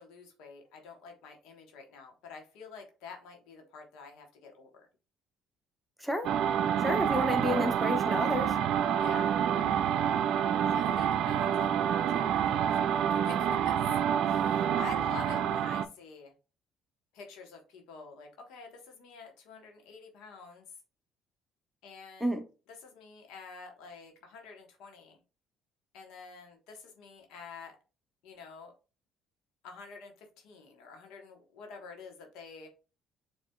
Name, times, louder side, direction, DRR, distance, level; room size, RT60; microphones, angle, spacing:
voice 1, 0.0-4.9 9.0-9.3 10.7-14.0 14.2-16.3 17.1-20.7 21.8-22.4 22.8-25.2 25.9-27.8 28.2-28.7 29.6-32.7, left 4 dB, 75° left, 1.2 m, -48 dB
voice 2, 6.0-6.3 6.8-8.5 22.2-22.4, equal, ahead, 1.0 m, -30 dB
sound 1, 6.2-15.9, right 9 dB, 65° right, 0.4 m, -28 dB
7.4 x 3.1 x 2.3 m
hypercardioid pair, 60°, 0 cm